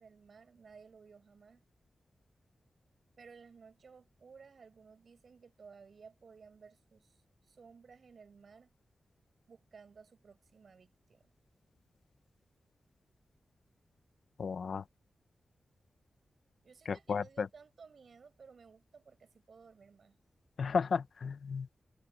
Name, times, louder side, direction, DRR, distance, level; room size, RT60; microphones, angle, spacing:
voice 1, 0.0-1.6 3.2-8.7 9.5-11.2 16.6-20.2, right 5 dB, 60° right, 6.5 m, -57 dB
voice 2, 14.4-14.8 16.9-17.5 20.6-21.7, left 5 dB, 65° left, 0.9 m, -33 dB
wide cardioid pair, 145°, 0 cm